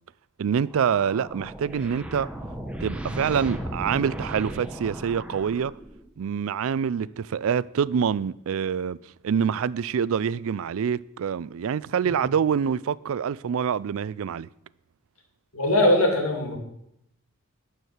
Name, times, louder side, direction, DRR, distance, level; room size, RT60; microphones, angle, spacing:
voice 1, 0.4-2.3 2.8-5.7 6.2-9.0 9.2-14.5, right 7 dB, 65° right, 0.4 m, -26 dB
sound 1, 0.7-6.1, right 1 dB, 5° right, 0.9 m, -36 dB
voice 2, 15.5-16.6, left 1 dB, 75° left, 2.5 m, -21 dB
12.0 x 4.7 x 8.0 m
head